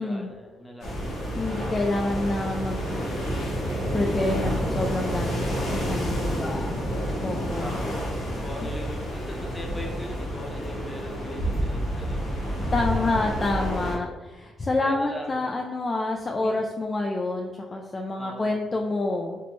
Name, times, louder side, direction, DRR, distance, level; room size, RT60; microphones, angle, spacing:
voice 1, 0.0-1.2 7.6-7.9 8.4-12.3 12.6-12.7 14.8-15.4 16.4-16.6 18.2-18.6, left 1 dB, 15° left, 0 dB, 0.8 m, -39 dB
sound 1, 0.8-14.0, equal, 70° left, 1.1 m, -29 dB
voice 2, 1.4-3.0 3.9-5.6 5.9-6.8 7.2-7.7 12.7-19.4, left 2 dB, 30° left, 1 dB, 0.3 m, -28 dB
4.2 x 2.0 x 3.0 m, 1.2 s
cardioid pair, 90°, 0 cm